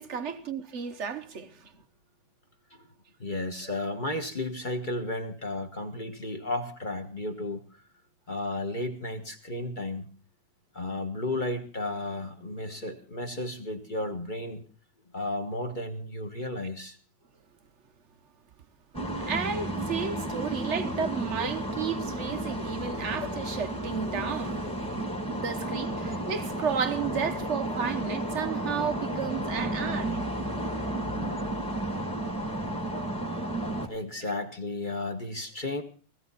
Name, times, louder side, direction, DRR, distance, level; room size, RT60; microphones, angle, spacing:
voice 1, 0.0-1.6 16.6-16.7 19.0-24.6 25.3-30.2, right 6 dB, 55° right, 0.8 m, -33 dB
voice 2, 3.2-7.6 8.3-10.1 10.7-14.6 15.1-17.0 33.9-35.8, left 2 dB, 25° left, 1.3 m, -33 dB
sound 1, 18.9-33.9, right 1 dB, 5° left, 1.9 m, -32 dB
17.5 x 15.5 x 4.1 m
omnidirectional pair, 2.4 m